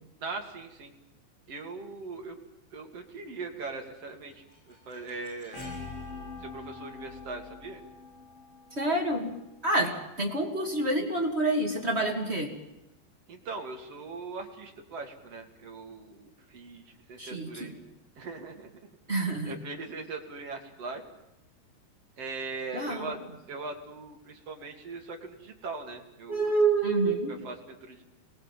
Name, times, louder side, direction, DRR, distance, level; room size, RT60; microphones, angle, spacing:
voice 1, 0.2-0.9 1.5-2.4 2.7-5.7 6.4-7.8 9.8-10.0 13.3-17.8 18.2-18.7 19.5-21.0 22.2-23.2 23.5-26.5 27.4-28.0, right 3 dB, 45° right, 3 dB, 2.4 m, -40 dB
sound 1, 4.1-10.0, left 3 dB, 90° left, 10.5 m, -45 dB
voice 2, 8.7-9.3 9.6-12.5 17.2-17.7 19.1-19.5 22.7-23.1 26.3-27.3, right 2 dB, 20° right, 1 dB, 1.8 m, -27 dB
27.0 x 21.0 x 7.4 m, 0.94 s
omnidirectional pair, 5.1 m